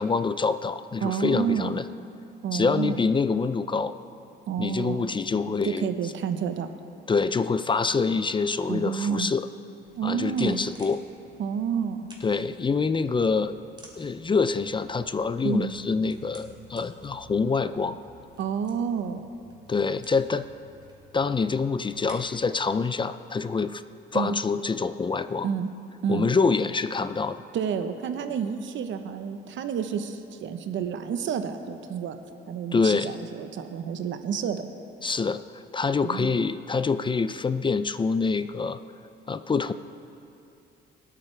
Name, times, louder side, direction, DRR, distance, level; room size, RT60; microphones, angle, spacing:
voice 1, 0.0-1.8 2.5-3.9 4.6-5.9 7.1-9.5 10.0-11.0 12.2-13.6 14.0-18.0 19.7-20.4 21.1-23.8 24.1-25.5 26.1-27.4 32.7-33.1 35.0-38.8 39.3-39.7, left 4 dB, 25° left, 12 dB, 0.4 m, -26 dB
voice 2, 1.0-1.7 2.4-3.0 4.5-5.0 5.7-6.7 8.7-9.3 10.0-10.6 11.4-12.1 15.4-15.7 18.4-19.2 24.1-24.3 25.4-25.7 26.0-26.3 27.5-32.2 32.5-34.7 36.0-36.4, right 7 dB, 70° right, 8 dB, 0.9 m, -29 dB
sound 1, 9.8-22.5, right 1 dB, 20° right, 2.6 m, -53 dB
24.0 x 8.8 x 3.3 m, 2.6 s
cardioid pair, 90°, 20 cm